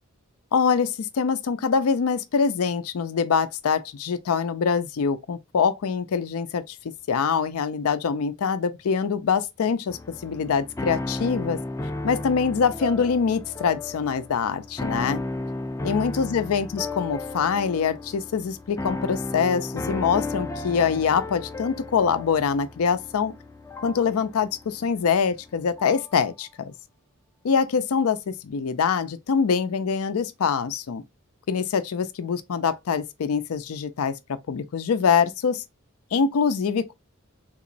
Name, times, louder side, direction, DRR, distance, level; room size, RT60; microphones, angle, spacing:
voice 1, 0.5-6.8 7.1-11.6 12.0-15.2 15.8-23.3 23.8-26.7 27.4-31.0 31.5-35.6 36.1-36.9, left 6 dB, 90° left, 0.4 m, -24 dB
sound 1, 9.9-26.1, left 2 dB, 15° left, 0.3 m, -34 dB
3.6 x 2.9 x 2.5 m
head